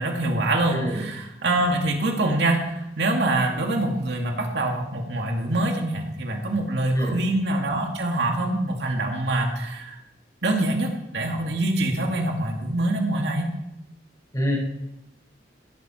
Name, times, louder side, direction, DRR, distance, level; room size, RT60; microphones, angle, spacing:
voice 1, 0.0-10.0 10.4-13.5, right 2 dB, 75° right, 2 dB, 2.5 m, -25 dB
voice 2, 0.7-1.0 6.9-7.1 14.3-14.6, equal, 20° left, -2 dB, 5.7 m, -26 dB
16.5 x 12.5 x 4.5 m, 0.86 s
head